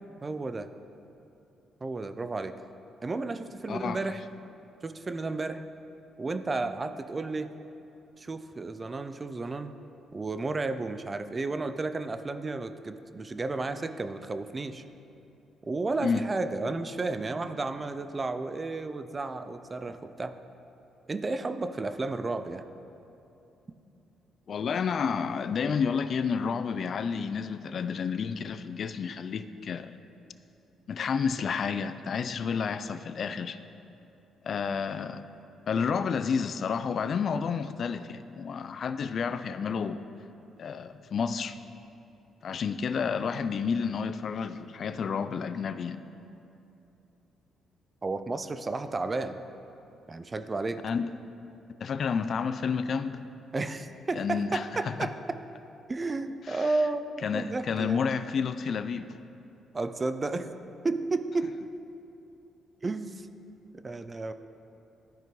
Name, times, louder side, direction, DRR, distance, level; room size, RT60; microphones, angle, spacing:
voice 1, 0.2-0.7 1.8-2.6 3.0-4.2 4.8-5.6 6.2-7.5 8.2-9.7 10.1-14.8 15.6-20.4 21.1-22.6 48.0-49.4 50.1-50.8 53.5-55.4 55.9-58.0 59.7-60.5 60.8-61.5 62.8-63.3 63.7-64.3, right 3 dB, 30° right, 10 dB, 0.3 m, -32 dB
voice 2, 3.7-4.0 16.0-16.2 24.5-29.9 30.9-33.6 34.4-35.2 35.7-40.0 40.6-41.6 42.4-46.0 50.8-51.1 51.8-53.2 54.2-55.1 56.5-56.7 57.2-59.1, left 6 dB, 55° left, 11 dB, 0.3 m, -30 dB
12.5 x 5.1 x 3.1 m, 2.8 s
cardioid pair, 90°, 0 cm